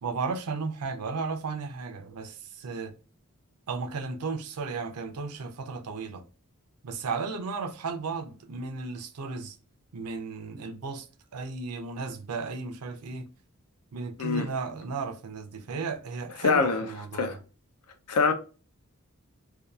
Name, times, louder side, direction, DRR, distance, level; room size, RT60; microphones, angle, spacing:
voice 1, 0.0-2.9 3.7-6.2 6.8-9.6 9.9-11.1 11.3-13.3 13.9-17.4, right 4 dB, 85° right, 0.5 m, -34 dB
voice 2, 16.4-16.9 17.1-17.4 18.1-18.3, left 4 dB, 85° left, 0.5 m, -24 dB
2.7 x 2.3 x 2.2 m
head